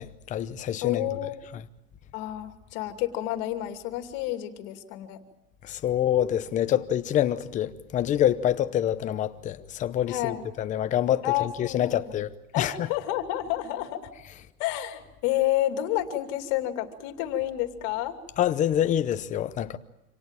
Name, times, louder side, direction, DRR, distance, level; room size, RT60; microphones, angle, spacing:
voice 1, 0.0-1.0 5.6-12.3 12.6-12.7 18.4-19.8, left 11 dB, 15° left, 0.8 m, -26 dB
voice 2, 0.8-1.4 2.1-5.2 10.1-10.5 11.2-12.1 12.5-14.0 14.6-18.1, left 13 dB, 40° left, 2.8 m, -29 dB
27.0 x 18.0 x 9.0 m
supercardioid pair, 150°, 44 cm